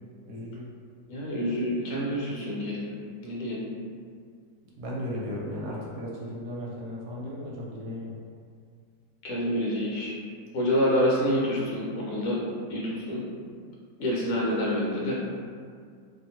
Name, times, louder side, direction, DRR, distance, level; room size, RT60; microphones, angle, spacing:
voice 1, 0.3-0.6 4.8-8.1, left 1 dB, 75° right, -4 dB, 1.2 m, -35 dB
voice 2, 1.1-2.9 3.2-3.6 9.2-10.1 10.5-12.4 12.7-13.2 14.0-15.2, equal, 65° left, -5 dB, 1.0 m, -27 dB
2.9 x 2.2 x 2.7 m, 2.2 s
omnidirectional pair, 1.8 m